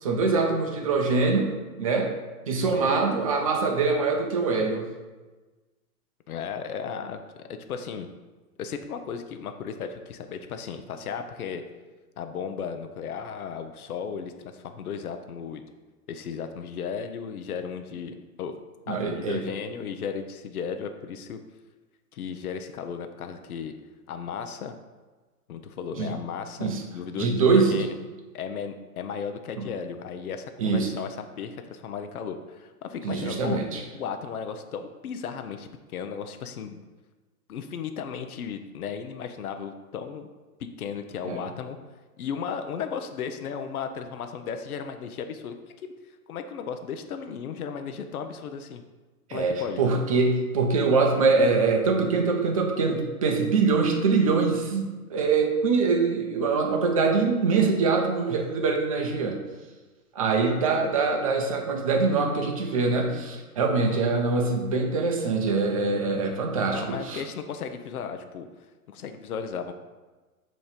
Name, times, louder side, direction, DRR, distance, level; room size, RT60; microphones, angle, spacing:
voice 1, 0.0-2.1 2.5-4.9 18.9-19.5 26.0-26.2 26.6-26.8 27.1-27.9 29.6-29.7 30.6-30.9 33.0-33.8 41.2-41.4 49.3-59.4 60.1-67.2, right 4 dB, 25° right, 1 dB, 0.6 m, -24 dB
voice 2, 2.5-2.9 6.3-8.1 8.6-11.6 12.2-15.6 16.1-18.5 18.9-21.4 22.1-23.7 24.1-24.7 25.5-28.0 28.3-33.6 33.9-36.8 37.5-40.3 40.6-41.8 42.2-45.5 45.8-45.9 46.3-48.8 49.3-49.8 66.7-68.5 68.9-69.7, left 6 dB, 70° left, 7 dB, 0.8 m, -35 dB
7.0 x 3.1 x 5.1 m, 1.3 s
hypercardioid pair, 155°, 46 cm